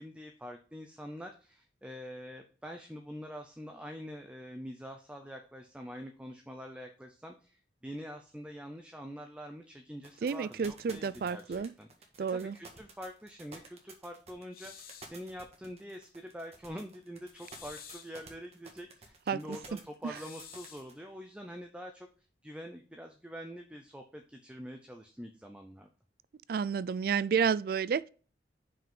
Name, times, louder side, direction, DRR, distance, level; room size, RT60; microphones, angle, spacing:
voice 1, 0.0-22.1 22.4-25.9, equal, 5° right, 0.5 m, -45 dB
sound 1, 10.0-20.9, right 3 dB, 35° right, 1.5 m, -51 dB
voice 2, 10.2-11.7 12.2-12.5 19.3-19.4 20.0-20.1 26.5-28.1, right 6 dB, 55° right, 0.3 m, -30 dB
sound 2, 14.5-15.2 17.3-18.2 20.1-20.9, left 8 dB, 55° left, 1.0 m, -50 dB
5.9 x 5.0 x 5.3 m
head